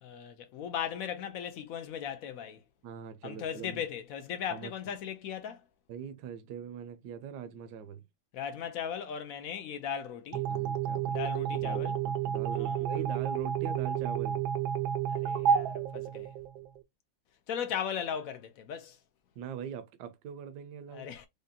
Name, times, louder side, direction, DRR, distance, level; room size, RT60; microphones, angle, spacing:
voice 1, 0.0-2.6 3.2-5.6 8.3-10.4 11.1-12.0 12.5-12.8 15.1-16.3 17.5-19.0 20.9-21.3, left 8 dB, 70° left, 0.8 m, -37 dB
voice 2, 2.8-3.8 4.5-4.7 5.9-8.0 10.5-11.2 11.6-14.5 19.4-21.1, right 7 dB, 70° right, 1.1 m, -42 dB
sound 1, 10.3-16.8, right 8 dB, 85° right, 1.4 m, -31 dB
5.0 x 2.2 x 2.6 m
omnidirectional pair, 2.1 m